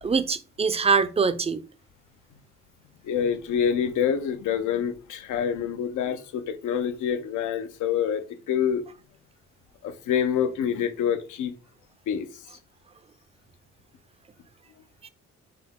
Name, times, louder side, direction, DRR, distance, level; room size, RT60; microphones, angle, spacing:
voice 1, 0.0-1.6 15.0-15.1, right 5 dB, 20° right, 0.4 m, -23 dB
voice 2, 3.0-8.8 9.8-11.5 12.1-12.3, left 8 dB, 80° left, 0.6 m, -26 dB
5.8 x 2.0 x 3.6 m
cardioid pair, 90°, 30 cm